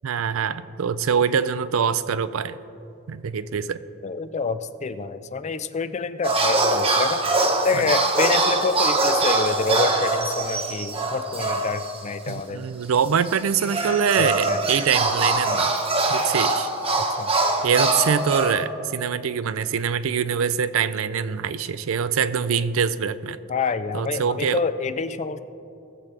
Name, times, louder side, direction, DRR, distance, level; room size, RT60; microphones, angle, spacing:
voice 1, 0.0-2.6 3.1-3.8 7.8-7.9 12.3-15.8 16.1-16.7 17.6-23.4 23.9-24.7, right 7 dB, 75° right, 14 dB, 0.4 m, -24 dB
voice 2, 4.0-7.2 7.6-12.6 14.2-14.6 17.0-17.3 23.5-25.4, left 4 dB, 35° left, 12 dB, 0.4 m, -27 dB
sound 1, 6.2-12.0 12.3-12.4 13.3-18.5, right 2 dB, 30° right, 1.0 m, -23 dB
19.5 x 7.4 x 3.3 m, 2.7 s
head